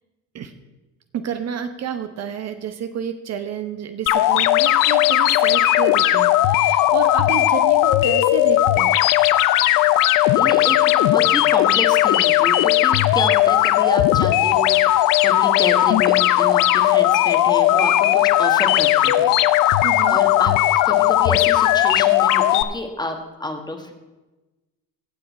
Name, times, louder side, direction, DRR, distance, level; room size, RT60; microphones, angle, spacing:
voice 1, 1.1-9.0 19.8-20.2, right 8 dB, 50° right, 8 dB, 0.9 m, -30 dB
sound 1, 4.1-22.6, left 14 dB, 75° left, 0.6 m, -17 dB
voice 2, 10.3-20.6 20.8-23.9, left 1 dB, 10° left, 5 dB, 1.5 m, -29 dB
16.5 x 6.5 x 4.3 m, 1.1 s
supercardioid pair, 85°, 33 cm